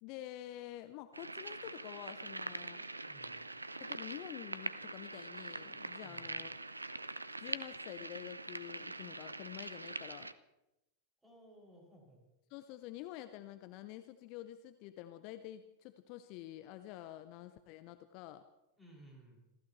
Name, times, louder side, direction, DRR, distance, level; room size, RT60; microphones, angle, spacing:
voice 1, 0.0-2.8 3.8-6.6 7.4-10.3 12.5-18.5, left 14 dB, 45° left, 10 dB, 0.8 m, -48 dB
sound 1, 1.1-10.3, right 2 dB, 80° right, 0.5 m, -44 dB
voice 2, 3.1-3.4 6.0-6.3 11.2-12.2 18.8-19.4, right 1 dB, 5° right, -2 dB, 6.7 m, -58 dB
26.5 x 15.0 x 3.2 m, 0.95 s
figure-of-eight pair, 90°, 0 cm